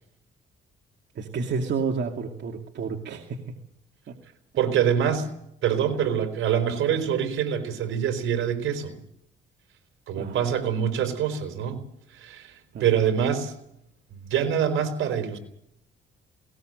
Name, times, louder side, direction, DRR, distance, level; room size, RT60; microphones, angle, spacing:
voice 1, 1.1-3.6 4.1-4.2 10.1-10.5 12.7-13.0, right 5 dB, 60° right, 3 dB, 2.4 m, -30 dB
voice 2, 4.6-5.3 5.6-8.9 10.1-11.8 12.1-13.5 14.1-15.4, right 8 dB, 75° right, 7 dB, 4.6 m, -25 dB
20.0 x 19.5 x 7.9 m, 0.75 s
cardioid pair, 85°, 20 cm